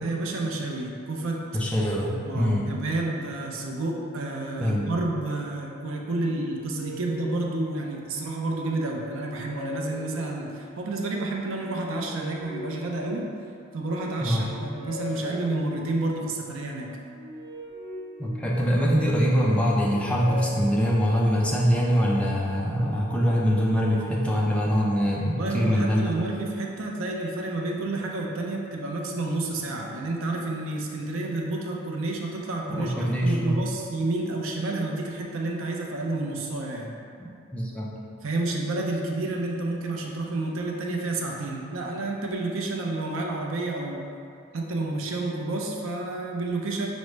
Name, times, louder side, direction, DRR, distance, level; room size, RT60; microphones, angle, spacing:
voice 1, 0.0-1.5 2.3-13.3 13.7-17.0 25.3-37.0 38.2-44.1 44.5-46.9, right 2 dB, 65° right, 0 dB, 0.5 m, -30 dB
voice 2, 1.5-2.6 4.6-4.9 14.2-14.5 18.2-26.2 32.7-33.6 37.2-37.9, equal, 5° left, -4 dB, 0.4 m, -24 dB
sound 1, 6.1-8.2 8.7-10.7 11.4-13.5 14.0-16.0 16.7-18.9 19.3-21.4, left 2 dB, 25° left, 1.1 m, -41 dB
6.0 x 2.1 x 3.2 m, 2.5 s
head